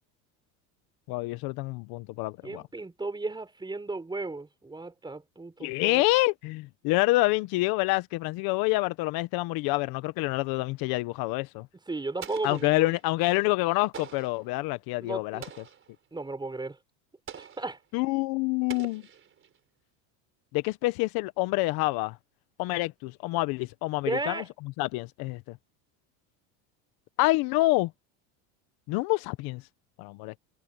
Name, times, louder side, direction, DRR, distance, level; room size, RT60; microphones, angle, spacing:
voice 1, 1.1-2.6 5.6-11.7 12.4-15.4 17.9-19.0 20.5-22.2 22.6-24.4 24.8-25.6 27.2-27.9 28.9-29.6 30.0-30.3, left 21 dB, 60° left, 1.0 m, -27 dB
voice 2, 2.4-6.0 11.9-12.9 15.0-15.5 16.1-16.8 17.4-17.8 24.1-24.5, right 3 dB, 10° right, 4.6 m, -35 dB
Explosion, 12.2-13.1 13.9-14.5 15.4-16.0 17.3-17.8 18.7-19.6, right 8 dB, 30° right, 4.6 m, -45 dB
supercardioid pair, 130°, 40 cm